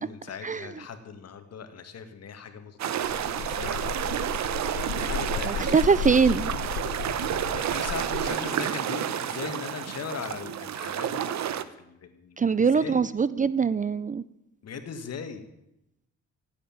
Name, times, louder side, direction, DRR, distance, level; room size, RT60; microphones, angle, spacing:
voice 1, 0.0-4.2 4.5-6.5 6.8-7.0 7.5-13.1 14.6-15.4, left 6 dB, 55° left, 8 dB, 2.2 m, -40 dB
sound 1, 2.8-11.6, right 10 dB, 65° right, 1.1 m, -30 dB
sound 2, 3.0-8.3, left 9 dB, 85° left, 1.3 m, -34 dB
voice 2, 5.5-6.5 12.4-14.2, right 5 dB, 25° right, 17 dB, 0.5 m, -23 dB
16.0 x 8.7 x 8.9 m, 0.84 s
cardioid pair, 90°, 30 cm